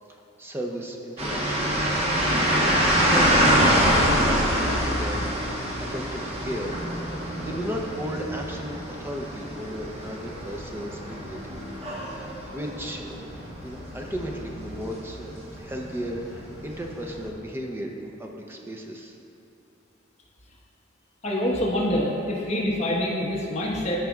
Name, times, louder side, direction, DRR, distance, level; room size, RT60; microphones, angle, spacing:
voice 1, 0.1-1.9 2.4-5.3 5.8-11.6 12.2-13.2 13.6-19.1, equal, 10° right, 1 dB, 0.6 m, -35 dB
sound 1, 1.2-17.3, equal, 30° right, 1.1 m, -26 dB
voice 2, 21.2-24.0, left 1 dB, 35° left, -4 dB, 1.2 m, -26 dB
13.5 x 5.1 x 2.4 m, 2.8 s
head